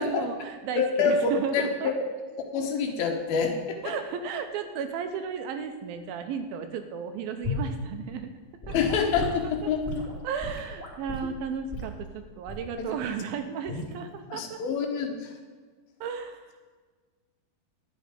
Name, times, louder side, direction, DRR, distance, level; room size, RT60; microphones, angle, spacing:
voice 1, 0.0-1.9 3.8-8.3 8.7-8.8 9.6-9.7 10.2-14.6 16.0-16.5, right 7 dB, 80° right, 7 dB, 2.4 m, -34 dB
voice 2, 0.8-1.9 2.4-3.9 8.7-9.8 12.8-13.0 14.3-15.3, left 5 dB, 70° left, 3 dB, 2.9 m, -27 dB
Gurgling / Sink (filling or washing) / Liquid, 7.4-7.7 8.6-11.3 11.7-12.0 12.5-12.7 13.6-13.9, left 1 dB, 20° left, 2.7 m, -34 dB
12.0 x 9.2 x 5.1 m, 1.5 s
omnidirectional pair, 4.6 m